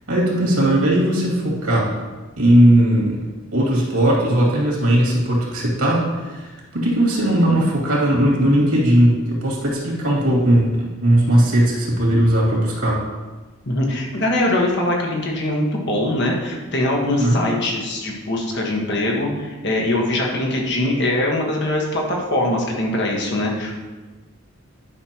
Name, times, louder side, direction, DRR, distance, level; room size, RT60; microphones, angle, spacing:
voice 1, 0.1-1.9 2.4-3.2 3.5-13.0 17.1-17.4, right 1 dB, 80° right, -4 dB, 2.5 m, -18 dB
voice 2, 13.6-23.7, left 1 dB, 50° left, -1 dB, 1.4 m, -22 dB
10.5 x 6.2 x 3.0 m, 1.3 s
head